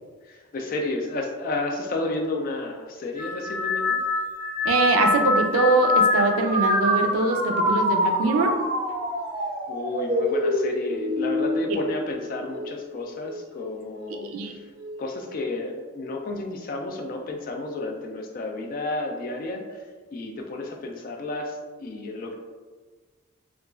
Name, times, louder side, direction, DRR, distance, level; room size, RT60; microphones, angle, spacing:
voice 1, 0.2-4.0 9.7-14.7 15.0-19.8 20.1-22.3, left 2 dB, 40° left, 2 dB, 0.3 m, -32 dB
sound 1, 3.2-12.8 13.2-13.8 14.8-15.1, left 2 dB, 25° right, 0.4 m, -25 dB
voice 2, 4.6-8.5 14.1-14.5, right 3 dB, 90° right, 4 dB, 0.4 m, -23 dB
2.9 x 2.3 x 2.3 m, 1.4 s
head